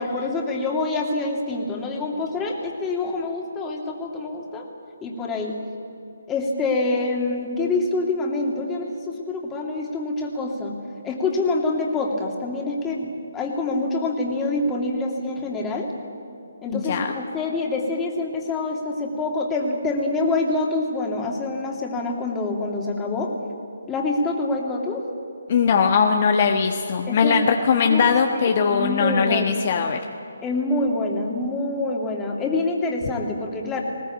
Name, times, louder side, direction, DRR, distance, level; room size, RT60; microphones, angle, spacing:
voice 1, 0.0-4.7 5.0-5.5 6.3-10.8 11.0-15.9 16.6-23.3 23.9-25.0 27.1-27.4 27.8-28.1 28.4-29.5 30.4-33.8, left 2 dB, 15° left, 0 dB, 2.8 m, -26 dB
voice 2, 16.7-17.1 25.5-30.0, left 6 dB, 45° left, 4 dB, 1.3 m, -20 dB
20.0 x 18.0 x 8.7 m, 2.7 s
figure-of-eight pair, 145°, 0 cm